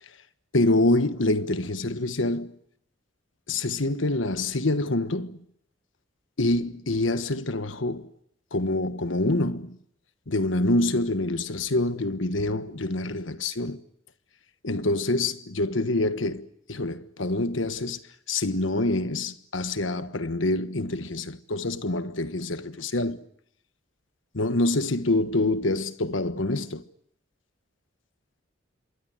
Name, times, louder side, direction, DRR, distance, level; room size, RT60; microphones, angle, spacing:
voice 1, 0.5-2.6 3.5-5.4 6.4-8.1 8.5-9.8 10.3-13.8 14.6-18.0 18.3-23.2 24.3-26.8, left 2 dB, 80° left, 1.3 m, -26 dB
27.0 x 22.0 x 7.7 m
head